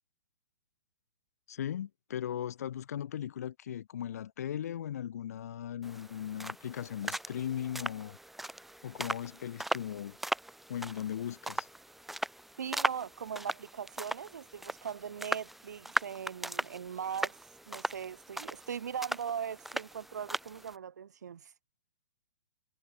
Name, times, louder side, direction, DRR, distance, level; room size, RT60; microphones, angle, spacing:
voice 1, 1.5-8.2 8.8-10.2 10.7-11.7, left 10 dB, 60° left, 1.3 m, -38 dB
sound 1, 5.8-20.7, right 1 dB, ahead, 0.9 m, -38 dB
voice 2, 12.6-17.4 17.7-21.5, right 8 dB, 70° right, 1.3 m, -40 dB
hypercardioid pair, 125°, 10 cm